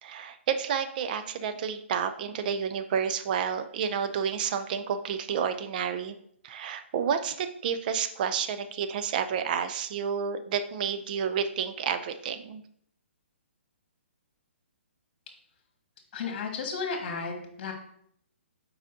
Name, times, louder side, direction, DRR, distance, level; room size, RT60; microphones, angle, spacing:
voice 1, 0.0-6.1 6.4-12.6, right 7 dB, 45° right, 10 dB, 0.5 m, -30 dB
voice 2, 16.1-17.7, left 5 dB, 45° left, 2 dB, 1.8 m, -33 dB
7.3 x 4.9 x 2.6 m, 0.67 s
hypercardioid pair, 135°, 7 cm